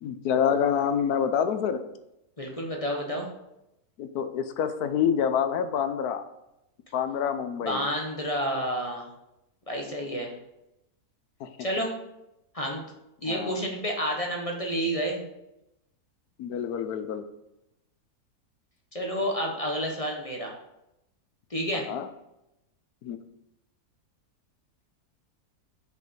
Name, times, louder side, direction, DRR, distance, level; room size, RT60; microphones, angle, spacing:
voice 1, 0.0-1.8 4.0-6.2 6.9-7.9 11.4-11.5 13.3-13.6 16.4-17.2 21.7-22.1 23.0-23.2, left 8 dB, 80° left, 10 dB, 1.2 m, -27 dB
voice 2, 2.4-3.3 7.6-9.1 9.7-10.3 11.6-11.9 12.5-12.8 13.2-15.2 18.9-20.6 21.5-21.9, equal, 25° left, 0 dB, 1.1 m, -30 dB
6.6 x 5.0 x 5.3 m, 0.88 s
omnidirectional pair, 1.6 m